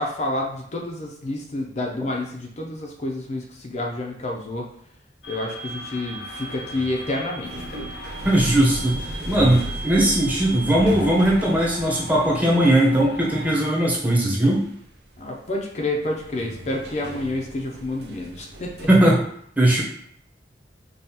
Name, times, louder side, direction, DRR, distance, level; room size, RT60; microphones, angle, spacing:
voice 1, 0.0-4.7 5.3-7.8 15.2-18.9, left 2 dB, 40° left, 0 dB, 0.5 m, -29 dB
sound 1, 5.2-13.6, right 1 dB, 80° left, 0.7 m, -37 dB
sound 2, 6.5-19.2, right 1 dB, 70° right, 0.6 m, -37 dB
voice 2, 8.2-14.6 18.9-19.2 19.6-19.8, right 1 dB, 10° right, -4 dB, 0.8 m, -19 dB
5.3 x 2.4 x 2.8 m, 0.68 s
head